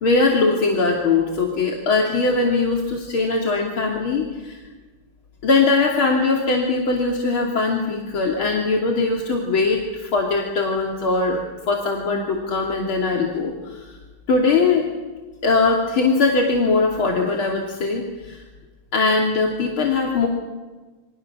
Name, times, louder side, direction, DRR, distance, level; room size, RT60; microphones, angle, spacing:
voice 1, 0.0-4.6 5.4-11.4 11.7-13.9 14.3-14.8 15.4-18.4 18.9-20.3, left 3 dB, 80° left, 0 dB, 3.7 m, -21 dB
29.0 x 25.0 x 7.2 m, 1.3 s
omnidirectional pair, 2.2 m